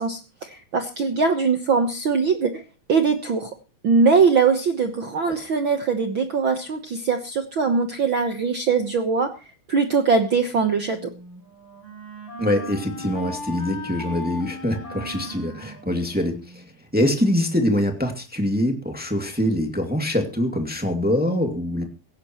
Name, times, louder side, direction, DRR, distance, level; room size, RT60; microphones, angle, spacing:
voice 1, 0.0-2.6 2.9-3.5 3.8-9.3 9.7-11.1, right 5 dB, 70° right, 5 dB, 1.1 m, -21 dB
Wind instrument woodwind instrument, 10.9-16.7, left 1 dB, 30° left, 8.0 m, -38 dB
voice 2, 12.4-16.6 16.9-21.8, left 1 dB, 5° right, 3 dB, 1.6 m, -24 dB
17.5 x 17.0 x 3.1 m, 0.32 s
omnidirectional pair, 4.0 m